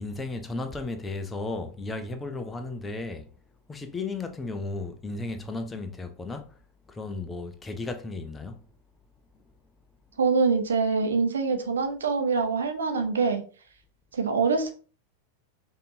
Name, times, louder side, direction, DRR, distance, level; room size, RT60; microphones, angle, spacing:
voice 1, 0.0-3.3 3.7-6.5 6.9-8.6, left 3 dB, 15° left, 0.6 m, -34 dB
voice 2, 10.2-13.4 14.1-14.7, right 4 dB, 70° right, 0.7 m, -24 dB
5.1 x 2.7 x 2.8 m
figure-of-eight pair, 90°, 0 cm